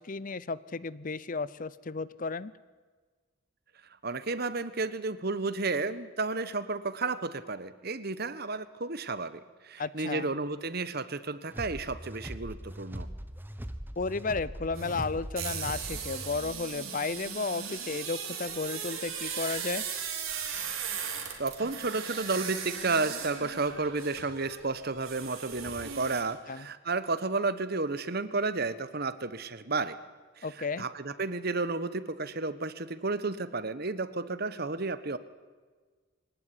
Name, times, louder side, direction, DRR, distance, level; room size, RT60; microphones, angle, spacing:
voice 1, 0.0-2.5 9.8-10.3 14.0-19.8 26.5-26.7 30.4-30.9, left 4 dB, 40° left, 18 dB, 0.6 m, -33 dB
voice 2, 4.0-13.1 21.4-30.0 30.4-35.2, right 3 dB, 50° right, 14 dB, 1.2 m, -32 dB
sound 1, 11.5-16.6, equal, 10° right, 1.1 m, -41 dB
sound 2, 14.7-26.2, right 7 dB, 80° right, 4.5 m, -38 dB
24.0 x 18.5 x 10.0 m, 1.5 s
head